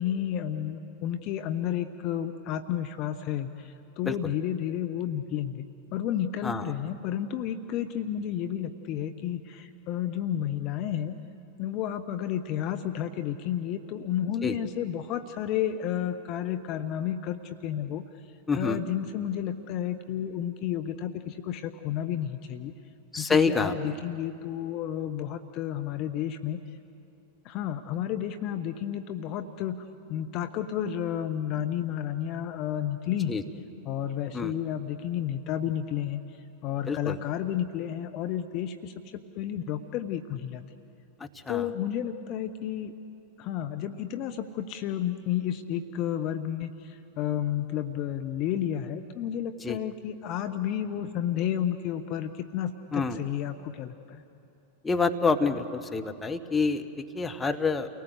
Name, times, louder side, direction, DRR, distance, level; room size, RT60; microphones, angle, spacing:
voice 1, 0.0-5.7 5.9-11.1 11.6-18.0 18.5-22.7 23.2-26.6 27.4-29.8 30.1-33.4 33.9-36.2 36.6-40.6 41.5-42.9 43.4-54.2, left 10 dB, 40° left, 8 dB, 0.9 m, -31 dB
voice 2, 18.5-18.8 23.1-23.9 33.3-33.4 34.3-34.5 36.9-37.2 41.2-41.7 49.6-49.8 52.9-53.2 54.8-57.9, left 4 dB, 10° left, 5 dB, 1.3 m, -27 dB
30.0 x 18.5 x 8.2 m, 2.8 s
figure-of-eight pair, 90°, 0 cm